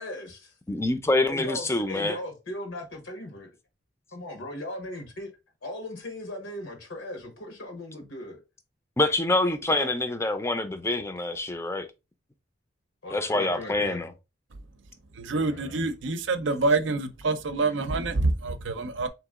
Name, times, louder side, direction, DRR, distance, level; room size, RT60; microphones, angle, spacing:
voice 1, 0.0-0.5 1.3-3.5 4.1-5.3 5.6-8.4 9.7-9.9 13.0-14.0 15.3-15.8, left 1 dB, 90° left, 1.3 m, -38 dB
voice 2, 0.7-2.2 9.0-11.9 13.1-14.1, left 2 dB, 15° left, 0.4 m, -26 dB
voice 3, 15.1-19.1, right 3 dB, 75° right, 0.6 m, -26 dB
3.6 x 2.9 x 3.6 m
head